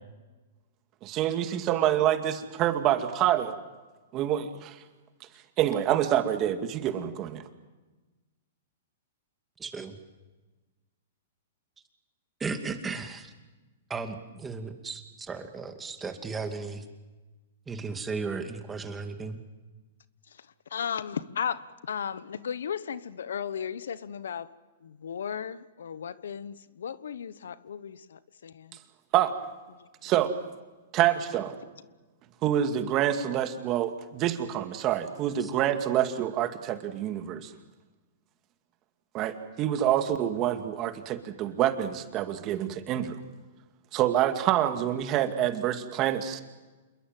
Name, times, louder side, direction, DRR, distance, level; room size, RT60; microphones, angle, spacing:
voice 1, 1.0-3.5 4.1-4.8 5.6-7.4 29.1-29.3 30.0-30.3 30.9-31.5 32.4-37.5 39.1-43.2 43.9-46.4, right 11 dB, 35° right, 7 dB, 2.2 m, -27 dB
voice 2, 9.6-10.0 12.4-13.3 13.9-16.9 17.7-19.4 35.4-35.5, right 4 dB, 15° right, 6 dB, 2.4 m, -35 dB
voice 3, 20.7-24.5 24.8-28.8, left 7 dB, 85° left, 17 dB, 1.0 m, -35 dB
27.5 x 22.0 x 7.6 m, 1.2 s
hypercardioid pair, 135°, 0 cm